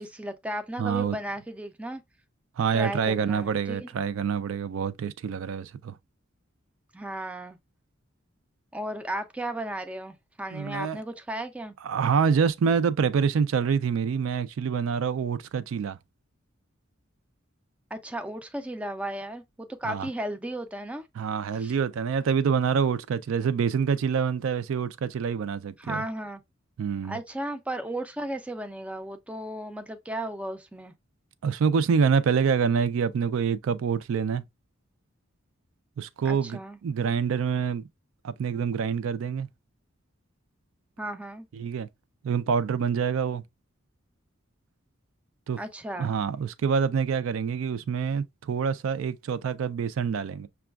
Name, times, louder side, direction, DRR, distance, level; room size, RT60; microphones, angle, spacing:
voice 1, 0.0-2.0 2.7-3.9 6.9-7.6 8.7-11.7 17.9-21.1 21.6-21.7 25.8-26.4 27.1-30.9 36.2-36.8 41.0-41.5 45.6-46.1, right 1 dB, 5° right, 0.3 m, -35 dB
voice 2, 0.8-1.2 2.6-6.0 10.5-11.0 11.8-16.0 19.8-20.1 21.2-26.0 26.8-27.2 31.4-34.4 36.0-37.9 38.2-39.5 41.5-41.9 42.2-43.4 45.5-45.6 46.0-50.5, right 6 dB, 75° right, 0.4 m, -26 dB
5.9 x 2.3 x 2.2 m
head